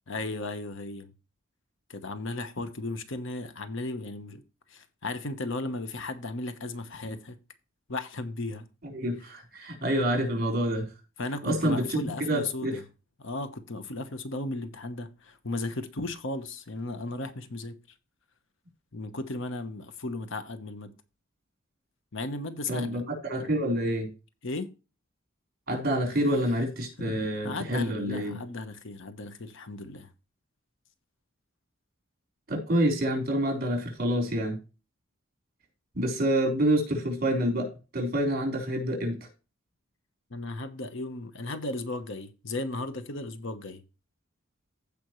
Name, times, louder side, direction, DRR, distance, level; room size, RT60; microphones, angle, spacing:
voice 1, 0.1-1.1 1.9-4.4 4.7-7.4 7.9-8.7 11.2-12.8 13.2-17.8 18.9-20.9 22.1-23.0 24.4-24.7 27.0-30.1 40.3-43.8, left 2 dB, 65° left, 1.1 m, -35 dB
voice 2, 8.9-10.9 11.4-12.0 12.3-12.8 22.7-24.1 25.7-28.4 32.5-34.6 36.0-39.2, right 1 dB, 50° right, 4.0 m, -27 dB
15.5 x 5.2 x 3.1 m
head